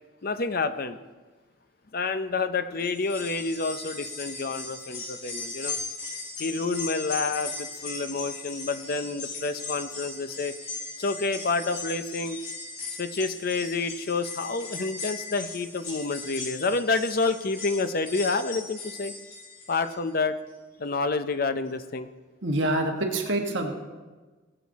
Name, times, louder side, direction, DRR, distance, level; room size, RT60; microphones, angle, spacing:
voice 1, 0.2-1.0 1.9-5.8 6.4-10.5 11.0-12.4 13.0-19.1 19.7-20.4 20.8-22.1, left 3 dB, 45° left, 10 dB, 0.6 m, -28 dB
sound 1, 2.8-20.1 20.5-20.6 21.7-21.8, left 3 dB, 85° left, 3.8 m, -38 dB
voice 2, 22.4-23.7, right 1 dB, 60° right, 2 dB, 1.6 m, -26 dB
19.5 x 7.8 x 4.1 m, 1.3 s
head